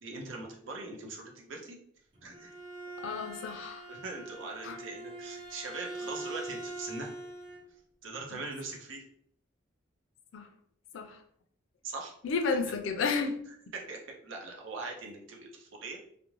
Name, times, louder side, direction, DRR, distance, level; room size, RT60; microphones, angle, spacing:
voice 1, 0.0-1.8 2.2-2.5 3.9-7.1 8.0-9.0 11.8-12.1 12.5-12.6 13.9-16.0, right 3 dB, 85° right, 0 dB, 0.6 m, -41 dB
Bowed string instrument, 2.1-7.7, right 2 dB, 25° right, 0.8 m, -43 dB
voice 2, 3.0-3.9 4.6-4.8 8.3-8.4 10.3-10.5 10.9-11.2 12.2-13.4, left 4 dB, 75° left, 6 dB, 0.4 m, -32 dB
2.4 x 2.0 x 3.0 m, 0.67 s
head